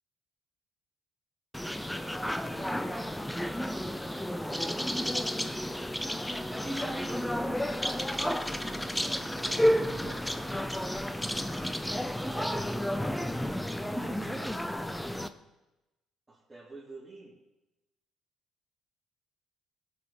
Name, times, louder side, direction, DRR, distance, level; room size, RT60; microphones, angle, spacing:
sound 1, 1.5-15.3, equal, 5° left, 0.7 m, -31 dB
voice 1, 4.4-5.2 12.0-12.9 16.3-17.3, right 3 dB, 15° right, -7 dB, 3.4 m, -47 dB
voice 2, 6.6-7.1 8.4-10.2 13.8-15.2, right 6 dB, 70° right, 1 dB, 1.5 m, -50 dB
16.5 x 6.9 x 5.5 m, 1.0 s
cardioid pair, 90°, 0 cm